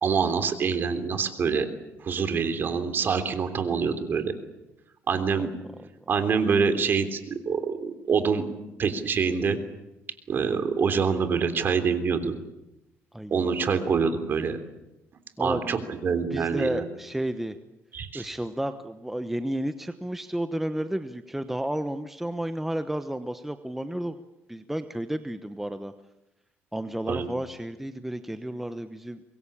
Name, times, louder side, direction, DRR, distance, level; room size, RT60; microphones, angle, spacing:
voice 1, 0.0-1.7 2.0-4.3 5.1-5.5 6.1-8.5 8.8-9.6 10.3-12.3 13.3-14.6 15.4-16.8 17.9-18.3 27.1-27.2, right 5 dB, 40° right, 8 dB, 3.3 m, -25 dB
voice 2, 13.1-13.5 15.4-15.8 16.3-17.6 18.1-24.2 24.5-25.9 26.7-29.2, right 1 dB, 5° right, 9 dB, 1.1 m, -32 dB
25.0 x 21.5 x 8.6 m, 0.94 s
cardioid pair, 125°, 5 cm